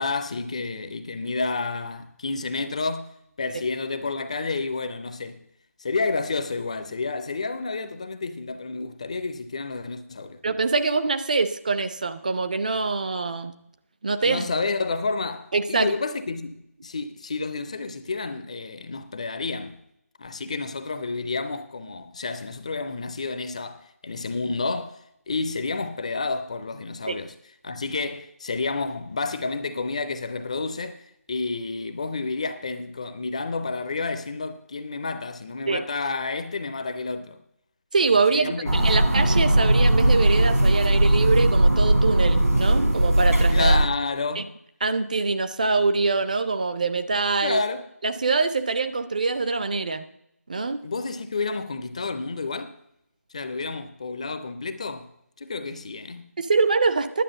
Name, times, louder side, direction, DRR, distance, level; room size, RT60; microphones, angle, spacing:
voice 1, 0.0-5.4 5.8-10.4 14.2-19.8 20.2-27.3 27.6-31.0 31.3-37.4 38.3-39.1 43.5-44.5 47.4-47.9 50.8-52.7 53.3-55.1 55.4-56.3, left 3 dB, 25° left, 0.5 m, -30 dB
voice 2, 10.4-13.5 14.0-14.4 15.5-15.9 27.1-27.2 35.7-35.8 37.9-43.8 44.4-44.5 44.8-47.6 48.0-50.1 50.5-50.8 56.4-57.2, right 4 dB, 30° right, 0.5 m, -24 dB
sound 1, 38.7-43.8, right 1 dB, 80° right, 3.5 m, -19 dB
10.0 x 8.5 x 6.6 m
figure-of-eight pair, 160°, 8 cm